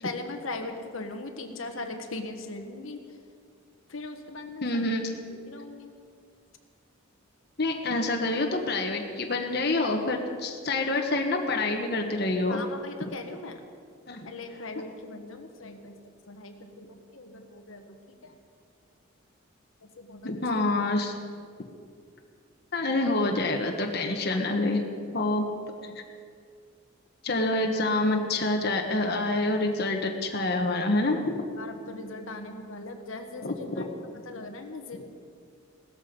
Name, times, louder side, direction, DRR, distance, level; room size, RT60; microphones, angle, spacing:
voice 1, 0.0-3.0 3.9-4.6 5.5-5.9 12.5-13.6 14.2-18.4 20.0-20.6 31.6-33.9 34.2-35.0, left 2 dB, 75° left, 4 dB, 1.3 m, -39 dB
voice 2, 4.6-5.1 7.6-12.6 14.1-14.3 20.2-21.1 22.7-24.8 25.1-25.4 25.8-26.0 27.2-31.4 33.4-33.9 34.9-35.0, left 2 dB, 50° left, 2 dB, 1.3 m, -27 dB
17.0 x 14.0 x 5.3 m, 2.2 s
head